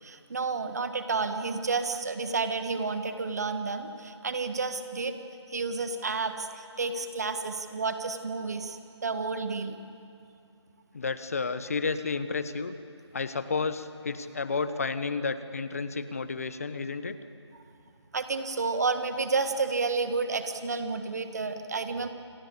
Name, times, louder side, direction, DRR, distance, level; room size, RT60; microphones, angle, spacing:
voice 1, 0.0-5.1 5.5-9.8 18.1-22.1, right 4 dB, 35° right, 8 dB, 1.6 m, -30 dB
voice 2, 10.9-12.7 13.1-17.2, left 4 dB, 30° left, 12 dB, 1.1 m, -31 dB
28.0 x 22.0 x 8.7 m, 2.5 s
figure-of-eight pair, 165°, 15 cm